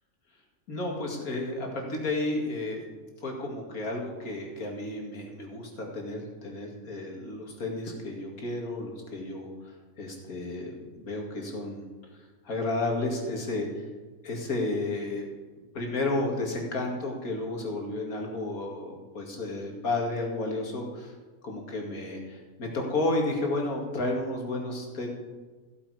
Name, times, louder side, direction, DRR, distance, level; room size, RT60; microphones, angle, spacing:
voice 1, 0.7-2.8 3.2-10.7 11.0-11.8 12.1-13.8 14.2-15.3 15.7-21.1 21.4-25.1, left 2 dB, 80° left, 0 dB, 2.6 m, -32 dB
15.0 x 8.6 x 4.9 m, 1.3 s
omnidirectional pair, 1.5 m